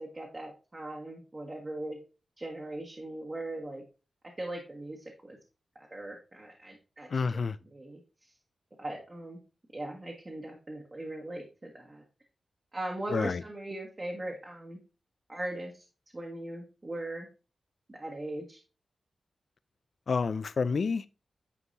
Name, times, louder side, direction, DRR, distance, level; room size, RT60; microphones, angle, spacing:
voice 1, 0.0-2.0 2.4-3.8 4.4-5.4 5.9-7.1 7.7-8.0 8.8-9.4 9.7-12.0 12.7-14.8 15.3-15.8 16.1-17.3 17.9-18.6, right 1 dB, 25° right, 1.4 m, -39 dB
voice 2, 7.1-7.6 13.1-13.4 20.1-21.1, left 5 dB, 60° left, 0.4 m, -29 dB
9.7 x 4.5 x 2.7 m
wide cardioid pair, 100°, 0 cm